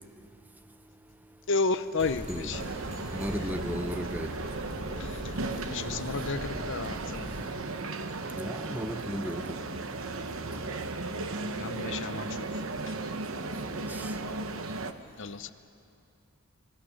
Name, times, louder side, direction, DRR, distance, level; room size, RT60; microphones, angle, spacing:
voice 1, 1.5-2.6 5.0-7.5 11.6-13.0 15.2-15.5, left 3 dB, 55° left, 12 dB, 0.7 m, -33 dB
sound 1, 2.0-7.4, equal, 35° right, 4.9 m, -41 dB
sound 2, 2.5-14.9, right 3 dB, 65° right, 1.0 m, -36 dB
voice 2, 3.1-4.3 8.4-9.4 13.7-14.1, equal, 10° right, 9 dB, 0.7 m, -35 dB
26.0 x 21.5 x 6.5 m, 2.6 s
head